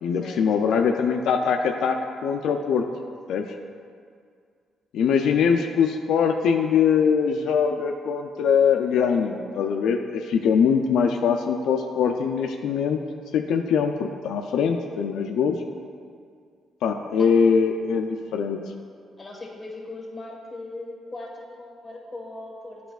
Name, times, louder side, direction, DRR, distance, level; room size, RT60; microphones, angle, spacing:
voice 1, 0.0-2.0 2.2-2.8 3.3-3.4 4.9-13.0 13.3-15.6 16.8-18.6, left 6 dB, 80° left, 4 dB, 0.3 m, -22 dB
voice 2, 19.2-22.8, left 2 dB, 20° left, -1 dB, 1.4 m, -39 dB
9.0 x 5.0 x 2.3 m, 2.2 s
cardioid pair, 90°, 0 cm